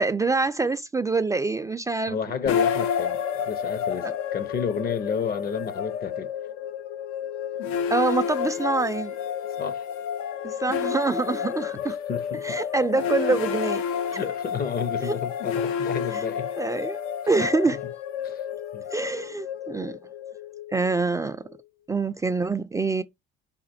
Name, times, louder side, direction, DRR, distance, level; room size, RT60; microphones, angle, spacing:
voice 1, 0.0-2.2 7.9-9.1 10.4-12.0 12.4-13.8 15.0-15.1 16.6-17.0 17.3-17.8 18.9-20.0 20.7-21.4 21.9-23.0, right 3 dB, 15° right, 0.4 m, -25 dB
voice 2, 2.1-6.3 9.6-9.9 11.7-12.6 14.1-16.5 17.2-17.3 18.2-18.4 18.7-18.9, left 6 dB, 50° left, 0.7 m, -31 dB
sound 1, 2.5-21.6, left 7 dB, 85° left, 0.6 m, -30 dB
5.0 x 2.5 x 4.2 m
cardioid pair, 105°, 21 cm